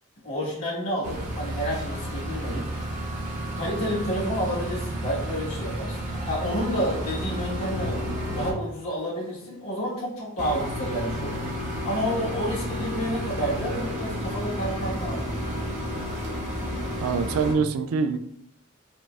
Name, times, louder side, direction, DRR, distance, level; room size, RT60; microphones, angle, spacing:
voice 1, 0.2-2.7 3.5-6.0 6.2-8.0 8.3-11.4 11.8-15.3, equal, 85° left, -6 dB, 1.3 m, -30 dB
sound 1, 1.0-8.5 10.4-17.5, equal, 35° right, 0.7 m, -31 dB
voice 2, 17.0-18.2, right 5 dB, 85° right, 9 dB, 0.3 m, -24 dB
4.9 x 2.0 x 2.3 m, 0.72 s
head